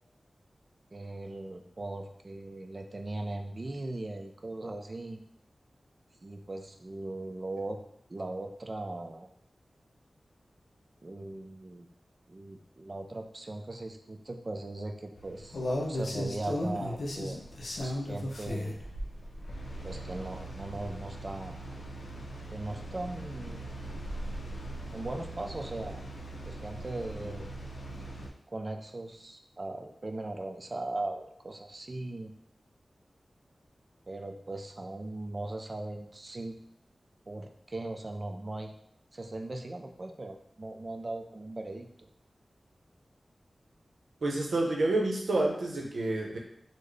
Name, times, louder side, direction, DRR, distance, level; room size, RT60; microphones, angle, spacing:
voice 1, 0.9-5.2 6.2-7.8 8.1-9.3 11.0-11.9 12.3-15.6 15.9-17.4 17.8-18.8 19.8-21.6 22.5-23.6 24.9-26.0 26.5-27.5 28.5-32.3 34.1-36.6 37.3-38.7 39.1-42.1, right 2 dB, 40° right, 5 dB, 0.4 m, -39 dB
sound 1, 15.2-28.3, equal, 85° left, 0.5 m, -38 dB
voice 2, 44.2-46.4, right 2 dB, 90° right, 0 dB, 0.6 m, -28 dB
3.8 x 2.0 x 3.2 m, 0.70 s
wide cardioid pair, 95°, 0 cm